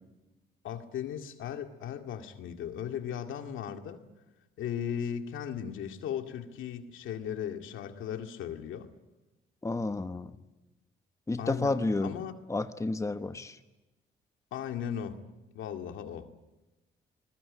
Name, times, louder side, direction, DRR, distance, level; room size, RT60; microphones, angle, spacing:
voice 1, 0.6-4.0 4.6-8.9 11.4-12.3 14.5-15.2 15.6-16.3, left 9 dB, 80° left, 5 dB, 2.1 m, -37 dB
voice 2, 9.6-10.3 11.3-12.1 12.5-13.5, left 2 dB, 15° left, 9 dB, 1.2 m, -30 dB
27.0 x 21.0 x 8.6 m, 1.1 s
cardioid pair, 90°, 20 cm